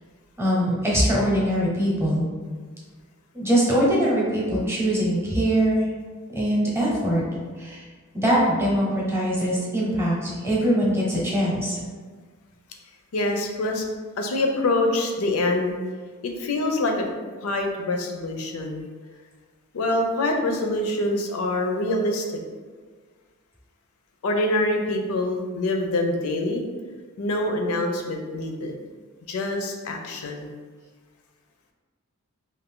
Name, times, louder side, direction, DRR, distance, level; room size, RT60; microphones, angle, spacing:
voice 1, 0.4-2.3 3.3-5.9 6.3-7.2 7.6-7.9 8.1-11.8, equal, 10° right, -5 dB, 0.8 m, -22 dB
voice 2, 13.1-13.9 14.2-15.8 16.2-17.1 17.4-18.9 19.7-22.3 24.2-26.6 27.2-28.7 29.3-30.5, left 2 dB, 70° left, 3 dB, 0.4 m, -25 dB
2.5 x 2.5 x 3.5 m, 1.5 s
head